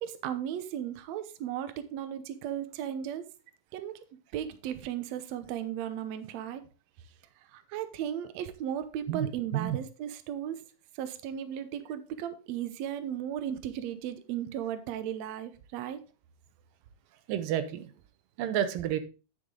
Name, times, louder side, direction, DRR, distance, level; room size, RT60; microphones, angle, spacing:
voice 1, 0.0-3.2 3.7-4.0 4.3-6.6 7.5-10.6 11.0-16.0, right 10 dB, 70° right, 1.8 m, -36 dB
voice 2, 17.3-17.9 18.4-19.0, right 11 dB, 85° right, 2.6 m, -29 dB
9.8 x 6.9 x 3.7 m
omnidirectional pair, 3.8 m